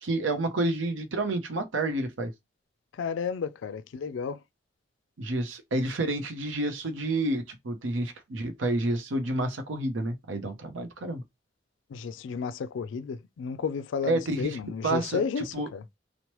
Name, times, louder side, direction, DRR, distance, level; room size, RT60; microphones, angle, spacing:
voice 1, 0.0-2.3 5.2-11.2 14.0-14.6 14.8-15.2 15.5-15.7, right 2 dB, 85° right, 0.7 m, -29 dB
voice 2, 2.9-4.4 11.9-15.8, left 6 dB, 80° left, 0.3 m, -32 dB
3.0 x 2.0 x 2.9 m
head